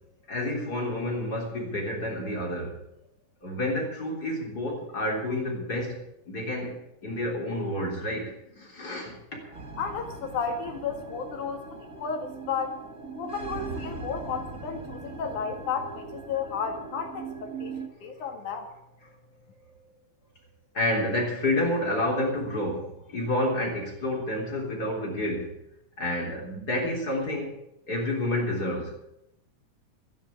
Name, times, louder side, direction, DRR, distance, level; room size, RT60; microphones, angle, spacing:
voice 1, 0.3-2.8 3.4-9.2 9.4-9.6 20.7-25.5 26.0-27.6 27.9-28.9, left 1 dB, 25° left, -1 dB, 4.0 m, -29 dB
sound 1, 9.5-17.9, right 4 dB, 35° right, 1.4 m, -40 dB
voice 2, 9.8-12.8 13.1-18.7, left 6 dB, 65° left, 4 dB, 3.2 m, -33 dB
13.0 x 10.5 x 8.6 m, 0.82 s
omnidirectional pair, 4.0 m